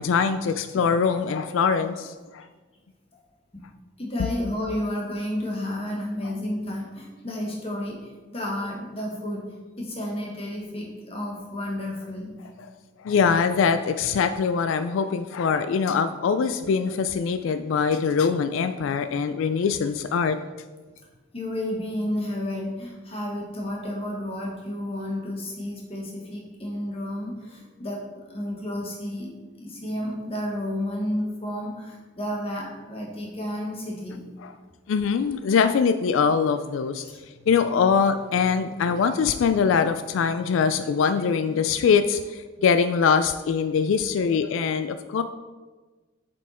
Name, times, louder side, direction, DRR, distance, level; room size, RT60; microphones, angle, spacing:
voice 1, 0.0-2.4 6.2-6.3 13.0-20.4 34.4-34.5 34.9-37.0 37.5-45.2, left 6 dB, 85° left, 10 dB, 0.3 m, -23 dB
voice 2, 4.0-12.3 21.0-21.1 21.3-29.3 29.6-34.2 37.0-37.2, left 1 dB, 30° left, -1 dB, 1.4 m, -31 dB
7.2 x 5.2 x 4.2 m, 1.3 s
head